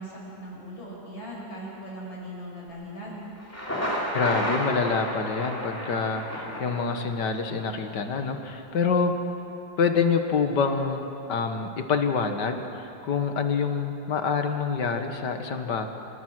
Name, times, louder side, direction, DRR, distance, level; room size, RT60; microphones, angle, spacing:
voice 1, 0.0-3.2, equal, 85° left, -4 dB, 6.5 m, -39 dB
Thunder, 3.4-7.3, equal, 5° left, 3.5 m, -31 dB
voice 2, 4.1-9.1 9.8-15.9, left 5 dB, 65° left, 6 dB, 1.9 m, -26 dB
26.5 x 19.5 x 6.2 m, 2.9 s
omnidirectional pair, 2.1 m